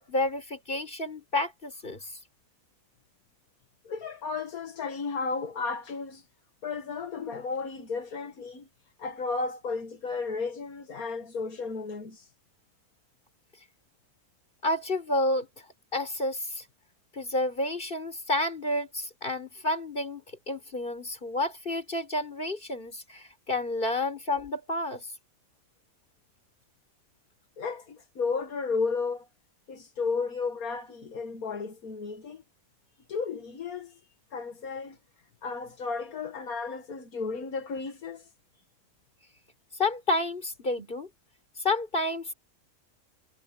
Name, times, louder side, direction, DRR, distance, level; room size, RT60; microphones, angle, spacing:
voice 1, 0.0-2.1 14.6-15.5 15.9-16.7 17.1-25.1 39.8-41.1 41.6-42.3, left 2 dB, 35° left, 4.8 m, -30 dB
voice 2, 3.8-6.2 6.6-8.7 9.0-12.3 27.6-29.3 29.7-32.4 33.1-34.0 34.3-35.0 35.4-38.2, left 4 dB, 80° left, 2.0 m, -33 dB
omnidirectional pair, 1.5 m